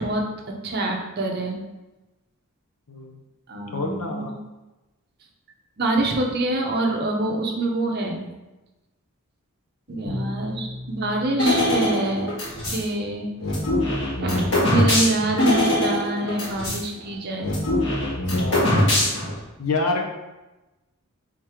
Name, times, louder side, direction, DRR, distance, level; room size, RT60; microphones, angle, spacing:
voice 1, 0.0-1.6 3.5-4.3 5.8-8.2 9.9-12.3 12.7-13.3 14.2-17.6, right 2 dB, 45° right, 1 dB, 0.7 m, -26 dB
voice 2, 2.9-3.2 3.6-4.3 9.9-10.0 18.0-18.9 19.6-20.0, left 3 dB, 80° left, 2 dB, 0.7 m, -28 dB
Bowed string instrument, 10.0-12.9, left 1 dB, 25° left, 1.0 m, -36 dB
sound 1, 11.4-12.8 13.4-16.8 17.1-17.2 17.4-19.4, left 1 dB, 55° left, 1.6 m, -22 dB
3.6 x 3.0 x 4.8 m, 1.0 s
head